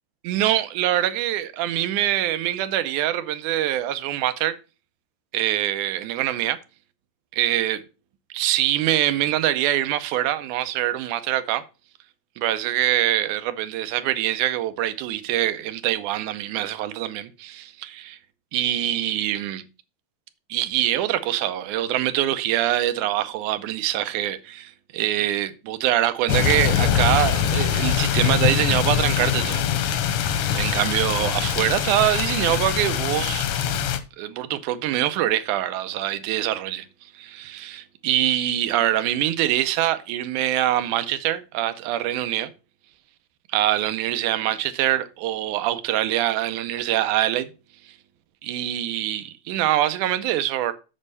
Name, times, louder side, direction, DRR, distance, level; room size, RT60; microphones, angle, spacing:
voice 1, 0.2-4.6 5.3-6.6 7.3-7.8 8.3-11.6 12.4-18.2 18.5-19.6 20.5-29.6 30.5-33.5 34.2-36.9 37.2-42.5 43.5-47.5 47.9-48.0 48.4-50.7, right 13 dB, 85° right, 2.2 m, -24 dB
sound 1, 26.3-34.0, left 9 dB, 70° left, 1.4 m, -23 dB
7.3 x 5.4 x 5.3 m
omnidirectional pair, 3.5 m